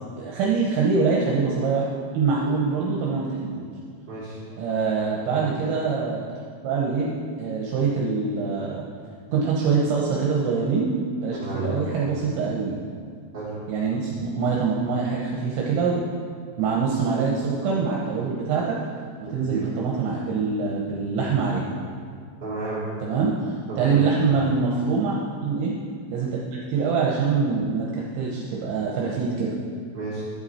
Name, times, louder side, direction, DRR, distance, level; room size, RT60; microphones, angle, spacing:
voice 1, 0.2-1.9 2.1-3.7 4.6-6.3 6.6-7.1 7.4-8.8 9.3-10.9 11.2-12.8 13.7-16.0 16.6-18.8 19.2-21.6 23.0-25.8 26.1-26.4 26.7-29.6, right 5 dB, 75° right, -3 dB, 3.1 m, -24 dB
voice 2, 4.1-4.4 11.3-11.7 13.3-13.5 19.2-19.7 22.4-22.8 23.7-24.0 29.9-30.2, right 3 dB, 30° right, -13 dB, 2.6 m, -32 dB
11.5 x 8.0 x 4.2 m, 2.1 s
omnidirectional pair, 5.6 m